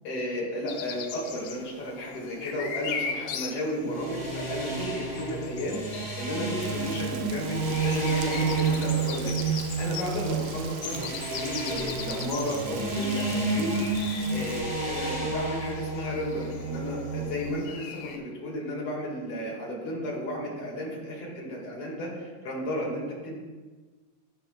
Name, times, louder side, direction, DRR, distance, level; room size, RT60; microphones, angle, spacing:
voice 1, 0.0-23.4, equal, 55° left, -4 dB, 2.6 m, -33 dB
sound 1, 0.7-18.2, left 6 dB, 85° left, 2.0 m, -40 dB
sound 2, 3.8-17.5, right 3 dB, 10° right, 0.4 m, -30 dB
Rain, 6.6-14.6, right 8 dB, 80° right, 1.6 m, -43 dB
13.5 x 5.6 x 2.2 m, 1.3 s
omnidirectional pair, 3.4 m